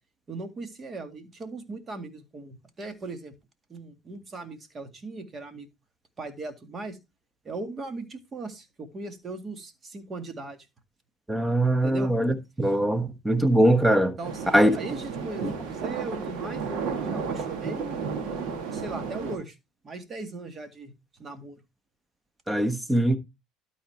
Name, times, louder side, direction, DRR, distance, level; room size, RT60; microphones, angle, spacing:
voice 1, 0.3-3.4 3.7-5.7 6.2-7.0 7.4-10.6 11.8-12.1 12.6-12.7 14.2-18.1 18.7-19.6 19.8-20.9 21.2-21.6, right 3 dB, 35° right, 2.1 m, -38 dB
voice 2, 11.3-14.2 14.5-14.8 15.4-15.5 22.5-23.2, right 1 dB, 10° right, 1.3 m, -22 dB
sound 1, 14.2-19.4, right 5 dB, 65° right, 2.2 m, -33 dB
12.5 x 4.2 x 4.4 m
hypercardioid pair, 80°, 0 cm